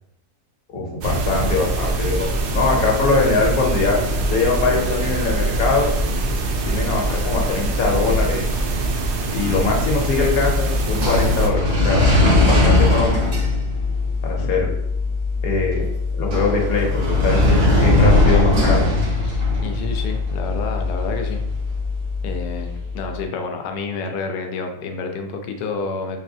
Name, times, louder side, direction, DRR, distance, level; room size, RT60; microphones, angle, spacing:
voice 1, 0.7-2.3 2.5-4.0 4.3-5.9 6.6-8.5 9.3-12.0 12.5-13.2 14.2-14.7 15.4-15.8 16.2-17.5 17.8-18.8, left 4 dB, 70° left, -1 dB, 1.2 m, -22 dB
sound 1, 1.0-11.5, right 2 dB, 65° right, 0.7 m, -23 dB
sound 2, 9.9-23.0, left 2 dB, 90° right, 1.8 m, -20 dB
voice 2, 19.2-21.4 22.2-26.2, left 4 dB, 90° left, 5 dB, 1.1 m, -29 dB
4.0 x 3.1 x 2.6 m, 0.80 s
omnidirectional pair, 1.6 m